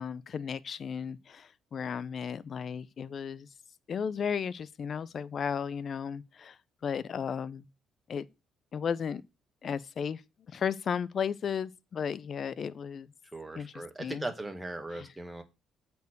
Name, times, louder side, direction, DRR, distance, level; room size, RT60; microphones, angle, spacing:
voice 1, 0.0-3.5 3.9-7.7 8.1-8.3 8.7-9.2 9.6-10.2 10.5-13.1 13.5-14.3 14.9-15.1, left 7 dB, 50° left, 0.6 m, -34 dB
voice 2, 13.3-15.4, right 2 dB, 10° right, 1.8 m, -38 dB
8.0 x 4.6 x 6.6 m
cardioid pair, 85°, 0 cm